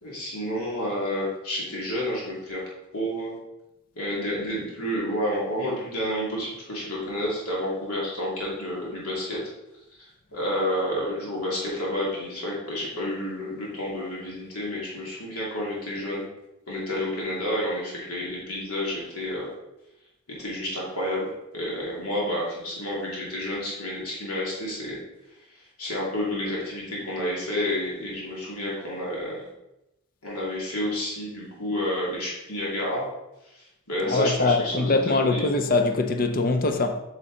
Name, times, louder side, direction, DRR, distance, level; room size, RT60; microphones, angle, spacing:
voice 1, 0.0-2.6 2.9-3.4 4.0-9.4 10.3-16.2 16.7-19.5 20.3-25.0 25.5-29.4 30.2-33.0 33.5-35.5, left 1 dB, 80° left, 2.6 m, -30 dB
voice 2, 34.1-37.0, left 3 dB, 40° left, 0.6 m, -23 dB
8.1 x 6.6 x 3.8 m
head